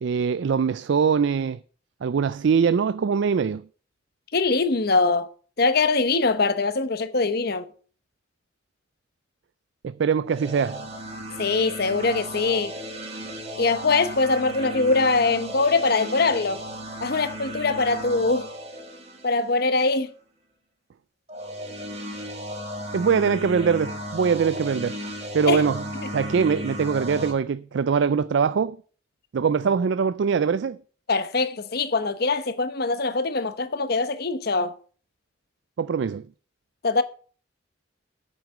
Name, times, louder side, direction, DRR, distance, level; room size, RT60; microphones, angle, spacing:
voice 1, 0.0-1.6 2.0-3.6 9.8-10.9 22.9-25.0 25.3-28.8 29.3-30.8 35.8-36.3, right 6 dB, 65° right, 0.4 m, -23 dB
voice 2, 4.3-5.3 5.6-7.7 11.4-12.7 13.6-16.6 17.0-18.5 19.2-20.1 25.5-25.6 31.1-34.7 36.8-37.0, left 3 dB, 50° left, 0.9 m, -22 dB
sound 1, 10.3-19.8 21.3-27.3, equal, 35° right, 1.8 m, -35 dB
8.8 x 6.2 x 7.3 m
head